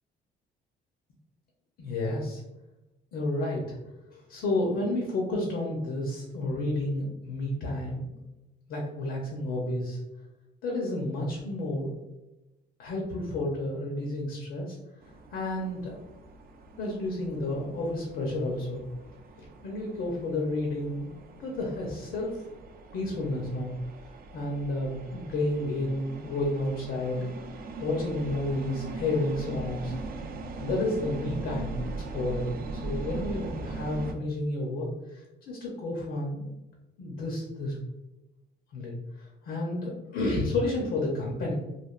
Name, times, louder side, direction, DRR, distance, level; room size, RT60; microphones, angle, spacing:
voice 1, 1.8-2.4 3.1-3.8 4.1-8.2 8.7-10.0 10.6-11.9 12.8-14.8 15.3-16.0 16.8-18.8 19.4-21.1 21.4-22.4 22.9-23.7 24.3-27.3 27.8-29.9 30.6-36.5 37.0-37.8 38.7-41.5, left 2 dB, 75° left, -2 dB, 0.7 m, -31 dB
sound 1, 15.0-34.1, right 3 dB, 50° right, 0.4 m, -40 dB
3.3 x 2.3 x 2.4 m, 1.0 s
cardioid pair, 90°, 20 cm